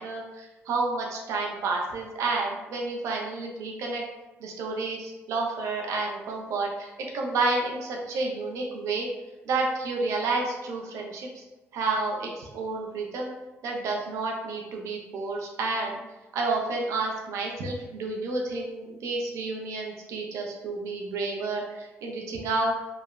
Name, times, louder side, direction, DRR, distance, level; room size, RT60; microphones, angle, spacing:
voice 1, 0.0-4.0 4.4-9.1 9.5-11.4 11.7-13.3 13.6-16.0 16.3-22.7, right 3 dB, 75° right, 0 dB, 0.5 m, -30 dB
3.1 x 2.0 x 2.3 m, 1.1 s
cardioid pair, 80°, 5 cm